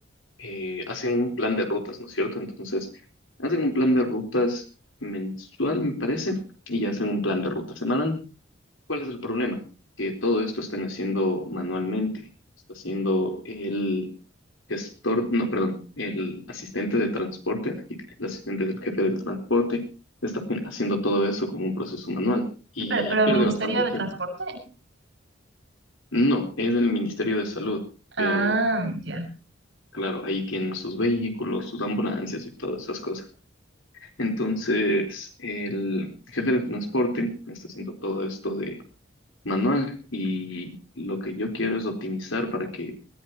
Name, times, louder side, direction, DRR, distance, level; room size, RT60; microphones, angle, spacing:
voice 1, 0.4-2.9 3.4-4.6 5.0-6.4 6.7-8.2 8.9-9.6 10.0-12.1 12.7-14.1 14.7-19.8 20.2-22.5 22.7-24.0 26.1-27.8 28.2-28.6 29.9-33.2 34.2-38.8 39.4-42.9, left 1 dB, 90° left, 4 dB, 4.3 m, -27 dB
voice 2, 22.9-24.6 28.2-29.3, right 2 dB, 65° right, 0 dB, 6.8 m, -25 dB
21.0 x 16.5 x 3.1 m, 0.34 s
head